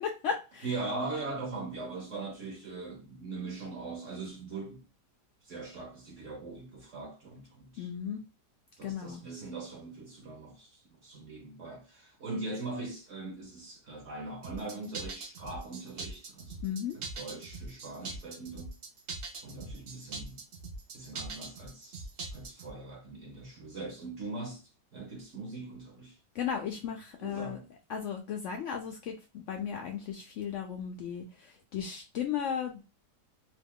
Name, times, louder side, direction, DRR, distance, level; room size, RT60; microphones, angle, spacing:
voice 1, 0.0-0.7 7.8-8.2 8.8-9.2 16.6-17.0 26.3-27.6 27.9-32.8, left 7 dB, 85° left, 0.6 m, -35 dB
voice 2, 0.6-4.8 5.4-7.9 8.8-16.6 16.9-18.7 19.4-20.4 20.9-22.0 22.3-26.2 27.2-27.7, right 3 dB, 55° right, 0.9 m, -41 dB
sound 1, 14.4-22.7, right 3 dB, 75° right, 0.5 m, -42 dB
2.9 x 2.3 x 3.5 m
omnidirectional pair, 1.8 m